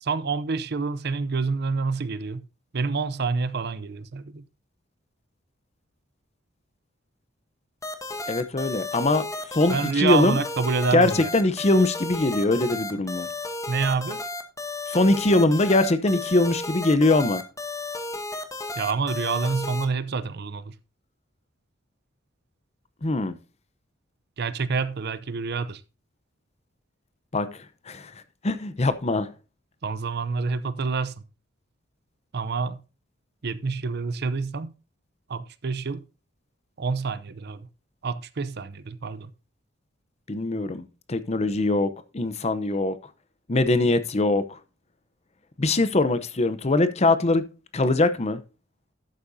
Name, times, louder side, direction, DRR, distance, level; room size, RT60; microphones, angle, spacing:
voice 1, 0.0-2.4 2.7-4.4 9.7-11.3 13.7-14.2 18.8-20.7 24.4-25.8 29.8-31.1 32.3-32.8 33.4-34.7 35.3-36.0 36.8-37.7 38.0-39.3, right 4 dB, 55° right, 0.6 m, -27 dB
sound 1, 7.8-19.9, left 2 dB, 15° left, 1.0 m, -33 dB
voice 2, 8.3-10.4 10.9-13.3 14.9-17.4 23.0-23.3 27.3-27.5 27.9-28.1 28.4-29.3 40.3-42.9 43.5-44.6 45.6-47.4 47.7-48.4, left 2 dB, 35° left, 0.7 m, -22 dB
11.5 x 8.6 x 2.7 m
head